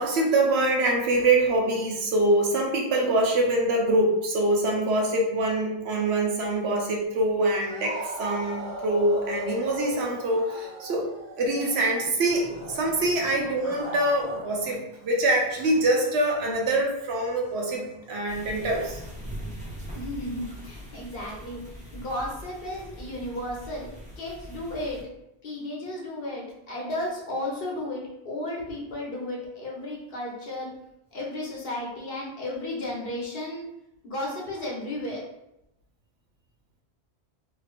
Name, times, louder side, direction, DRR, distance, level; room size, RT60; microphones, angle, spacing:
voice 1, 0.0-11.1 11.4-19.0, right 1 dB, 75° right, 0 dB, 0.9 m, -24 dB
sound 1, 7.4-14.8 15.0-18.9, right 1 dB, 20° left, 0.5 m, -39 dB
sound 2, 18.3-25.0, equal, 5° right, 0.8 m, -41 dB
voice 2, 19.9-23.9 24.2-25.0 25.4-30.7 31.1-33.6 34.0-35.2, left 1 dB, 60° left, -3 dB, 1.1 m, -34 dB
3.1 x 2.9 x 2.4 m, 0.87 s
omnidirectional pair, 1.1 m